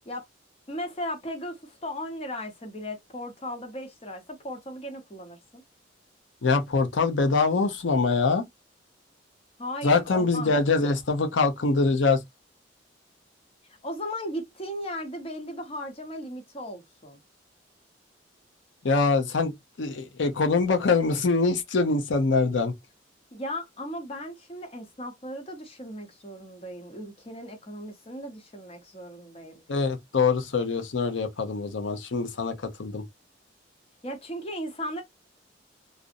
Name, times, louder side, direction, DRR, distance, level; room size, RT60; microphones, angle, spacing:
voice 1, 0.7-5.6 9.6-10.5 13.8-17.2 23.3-29.5 34.0-35.0, left 1 dB, 30° left, 0.7 m, -36 dB
voice 2, 6.4-8.4 9.8-12.2 18.8-19.5 19.8-22.7 29.7-32.5 32.8-33.0, left 4 dB, 90° left, 0.6 m, -24 dB
2.5 x 2.0 x 2.5 m
head